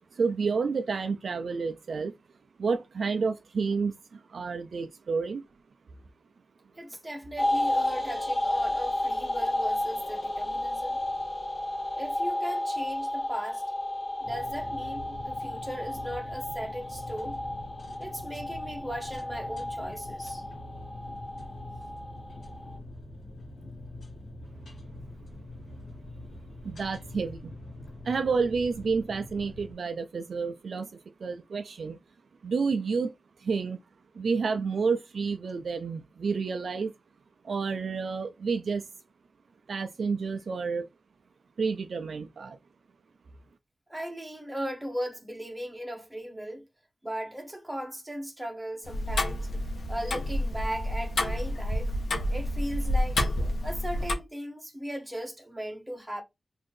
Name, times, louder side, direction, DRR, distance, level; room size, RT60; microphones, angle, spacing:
voice 1, 0.1-2.1 2.6-5.4 26.6-27.5 28.0-30.9 31.2-32.0 32.4-33.1 33.4-33.8 34.1-36.9 37.4-38.9 39.7-40.9 41.6-42.6, right 5 dB, 60° right, 0.3 m, -30 dB
voice 2, 6.7-11.0 11.9-13.6 14.2-17.4 18.0-20.4 43.9-46.7 47.0-49.5 49.9-51.9 52.3-53.2 53.6-56.2, equal, 10° right, 1.0 m, -37 dB
sound 1, 7.4-22.8, left 1 dB, 30° left, 0.9 m, -32 dB
sound 2, 14.2-29.7, left 1 dB, 60° left, 1.4 m, -44 dB
Tick-tock, 48.8-54.1, left 1 dB, 80° left, 0.9 m, -29 dB
4.0 x 2.6 x 3.2 m
wide cardioid pair, 140°, 0 cm